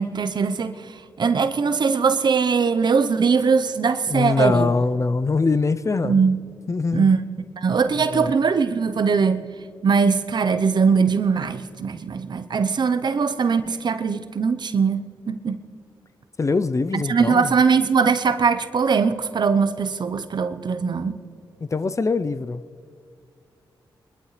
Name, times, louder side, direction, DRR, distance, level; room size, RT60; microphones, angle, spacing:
voice 1, 0.0-4.7 6.0-6.4 6.9-7.2 7.6-9.5 9.8-15.6 16.9-21.2, right 5 dB, 55° right, 0.9 m, -21 dB
voice 2, 4.1-6.2 6.7-7.1 8.0-8.3 16.4-17.5 21.6-22.6, left 4 dB, 35° left, 0.6 m, -23 dB
22.5 x 12.5 x 3.3 m
cardioid pair, 55°, 9 cm